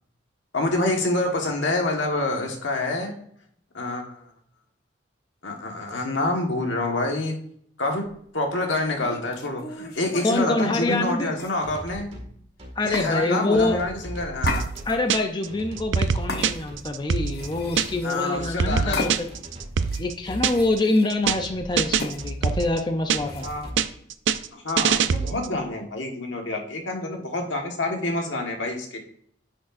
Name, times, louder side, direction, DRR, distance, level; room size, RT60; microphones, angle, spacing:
voice 1, 0.5-3.2 3.7-4.2 5.4-7.4 7.8-8.1 8.3-12.1 12.8-14.7 18.0-19.1 23.4-23.7 24.5-29.0, left 2 dB, 80° left, 2 dB, 1.5 m, -27 dB
sound 1, 8.0-8.2 9.0-10.5 11.3-12.0 12.9-13.1 14.4-15.2 16.3-16.9 17.2-18.3 18.9-19.5 19.8-21.1 22.0-22.2 23.3-23.7, left 3 dB, 55° left, 0.9 m, -35 dB
voice 2, 10.2-11.3 12.8-13.8 14.9-19.3 20.0-23.5, left 2 dB, 25° left, 5 dB, 0.5 m, -25 dB
sound 2, 11.6-12.3 12.6-13.0 13.5-15.0 15.5-16.2 16.4-16.9 17.4-18.1 18.3-18.8 19.3-20.0 20.3-20.7 21.2-22.6 23.1-23.8, equal, 30° right, 2.0 m, -39 dB
sound 3, 14.4-15.5 15.8-18.1 18.4-20.8 21.1-21.5 21.8-23.5 23.8-25.6, right 6 dB, 80° right, 0.4 m, -24 dB
9.8 x 6.2 x 2.6 m, 0.65 s
head